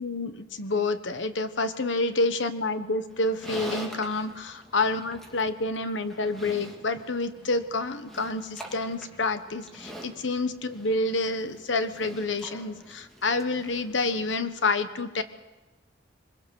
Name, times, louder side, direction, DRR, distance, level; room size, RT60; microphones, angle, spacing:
voice 1, 0.0-15.2, left 3 dB, 80° left, 10 dB, 1.2 m, -28 dB
Livestock farm animals working animals, 3.1-14.4, right 1 dB, ahead, 2.6 m, -45 dB
23.5 x 21.5 x 6.4 m, 1.1 s
head